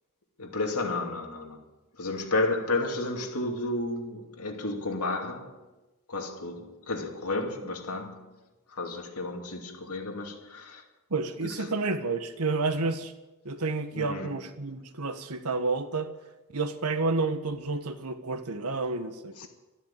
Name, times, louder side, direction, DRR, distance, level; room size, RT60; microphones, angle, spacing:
voice 1, 0.4-5.6 6.1-8.4 8.7-10.9 11.4-11.7 13.9-14.4 19.3-19.5, left 2 dB, 80° left, 2.6 m, -32 dB
voice 2, 11.1-13.1 13.4-16.1 16.5-19.5, right 3 dB, 80° right, 1.4 m, -30 dB
13.0 x 12.5 x 9.0 m
head